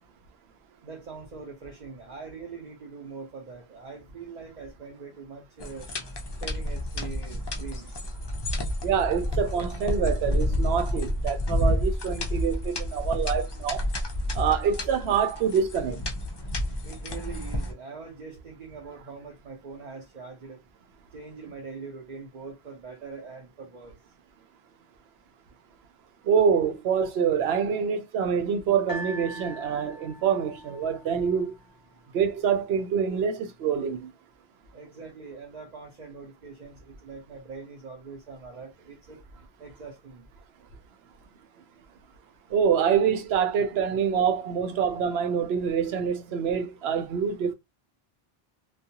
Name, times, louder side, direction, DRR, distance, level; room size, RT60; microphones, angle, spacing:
voice 1, 0.8-5.9 6.4-8.1 16.7-20.6 21.1-24.0 34.7-39.2 39.6-40.3, right 4 dB, 50° right, 0.7 m, -42 dB
sound 1, 5.6-17.7, left 1 dB, 40° left, 0.4 m, -30 dB
voice 2, 8.8-13.9 14.3-16.0 26.2-31.5 32.1-34.1 42.5-47.5, right 7 dB, 85° right, 0.8 m, -26 dB
sound 2, 28.9-32.1 32.8-32.9, equal, 20° left, 1.0 m, -42 dB
2.3 x 2.2 x 2.7 m
omnidirectional pair, 1.0 m